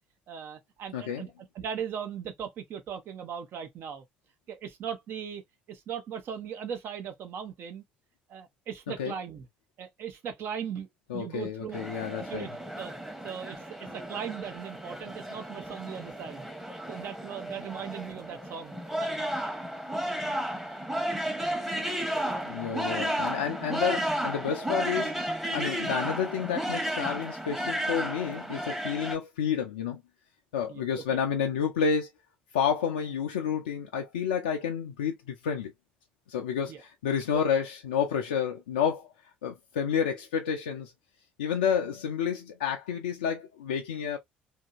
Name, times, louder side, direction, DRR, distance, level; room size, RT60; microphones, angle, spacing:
voice 1, 0.3-4.0 4.5-5.4 5.7-7.8 8.3-9.5 9.8-11.8 12.1-12.5 12.8-12.9 13.2-16.5 16.9-19.5 22.1-22.5 30.7-31.2 36.7-36.8 37.3-37.4, right 8 dB, 55° right, 0.8 m, -39 dB
voice 2, 0.9-1.2 9.0-9.1 11.1-12.5 22.5-25.1 25.5-30.0 30.5-32.1 32.5-35.7 36.3-39.1 39.4-40.9 41.4-44.2, left 7 dB, 80° left, 0.4 m, -30 dB
sound 1, 11.7-29.2, right 1 dB, 5° right, 1.0 m, -33 dB
2.9 x 2.6 x 2.3 m
figure-of-eight pair, 50°, 5 cm